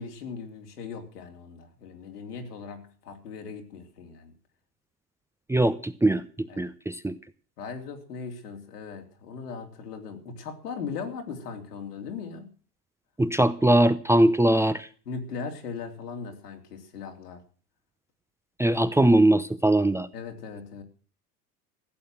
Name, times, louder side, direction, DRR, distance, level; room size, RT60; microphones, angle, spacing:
voice 1, 0.0-4.3 6.5-6.7 7.6-12.5 15.0-17.4 20.1-20.8, left 5 dB, 80° left, 3.3 m, -38 dB
voice 2, 5.5-6.2 6.6-7.2 13.2-14.9 18.6-20.1, right 1 dB, 5° right, 0.8 m, -21 dB
15.5 x 8.5 x 7.7 m
hypercardioid pair, 85°, 46 cm